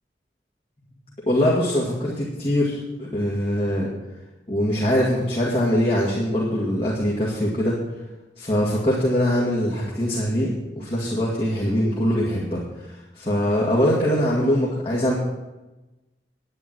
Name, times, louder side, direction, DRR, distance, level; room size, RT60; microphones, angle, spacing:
voice 1, 1.3-3.9 4.5-7.8 8.4-15.1, equal, 30° left, -5 dB, 1.9 m, -22 dB
10.5 x 9.8 x 6.2 m, 1.1 s
head